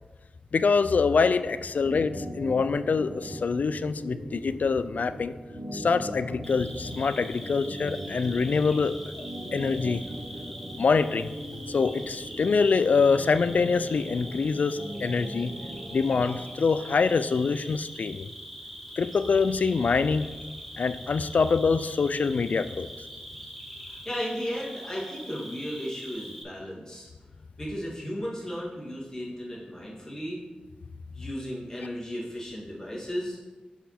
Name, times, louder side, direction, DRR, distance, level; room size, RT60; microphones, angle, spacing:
voice 1, 0.5-5.3 5.7-10.0 10.8-11.3 11.7-15.5 15.9-18.3 19.0-20.3 20.8-22.9, left 4 dB, 70° left, 13 dB, 0.3 m, -25 dB
sound 1, 1.5-16.3, equal, 80° right, 1.8 m, -40 dB
Cricket, 6.4-26.4, equal, ahead, 1.3 m, -43 dB
voice 2, 23.8-27.1 27.6-30.4 31.1-33.4, equal, 20° left, -5 dB, 2.1 m, -35 dB
5.8 x 5.7 x 4.2 m, 1.2 s
wide cardioid pair, 70°, 3 cm